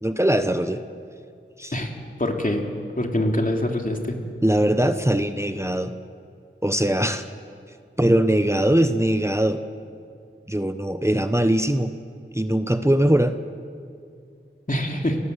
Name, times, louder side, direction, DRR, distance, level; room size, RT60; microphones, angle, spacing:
voice 1, 0.0-0.8 1.6-1.7 4.4-5.9 6.6-7.3 8.0-9.6 10.5-11.9 12.3-13.4, right 1 dB, 15° right, 9 dB, 1.0 m, -21 dB
voice 2, 2.2-2.6 3.0-4.1 14.7-15.2, left 1 dB, 40° left, 2 dB, 3.1 m, -24 dB
29.5 x 18.5 x 8.1 m, 2.4 s
wide cardioid pair, 50°, 21 cm